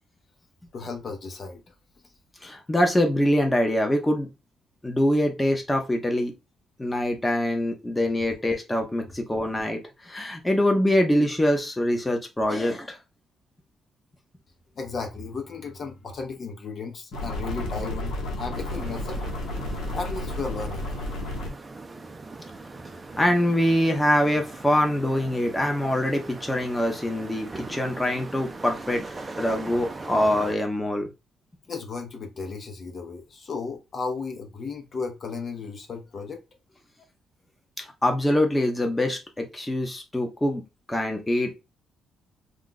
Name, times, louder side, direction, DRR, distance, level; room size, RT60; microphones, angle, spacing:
voice 1, 0.7-1.6 14.8-19.2 19.9-20.9 31.7-36.4, left 4 dB, 50° left, 0.7 m, -34 dB
voice 2, 2.4-4.3 4.8-6.3 6.8-9.8 10.1-13.0 23.2-29.0 29.4-31.1 37.8-40.6 40.9-41.6, left 1 dB, 10° left, 0.7 m, -24 dB
sound 1, 17.1-21.5, left 1 dB, 85° left, 1.0 m, -32 dB
sound 2, 18.5-30.5, right 3 dB, 25° right, 0.4 m, -40 dB
2.4 x 2.2 x 3.8 m
cardioid pair, 90°, 0 cm